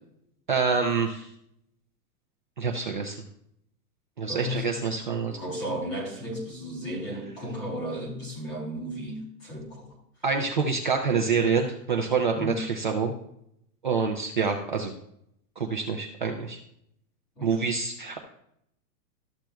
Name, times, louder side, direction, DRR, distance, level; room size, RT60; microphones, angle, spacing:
voice 1, 0.5-1.3 2.6-3.2 4.2-5.4 10.2-13.1 13.8-14.9 15.6-16.6 17.4-18.2, right 5 dB, 30° right, 2 dB, 0.5 m, -26 dB
voice 2, 4.3-4.8 5.4-10.0 12.3-12.6 17.4-17.8, equal, 10° left, -1 dB, 0.7 m, -34 dB
13.0 x 7.3 x 2.3 m, 0.73 s
supercardioid pair, 180°, 48 cm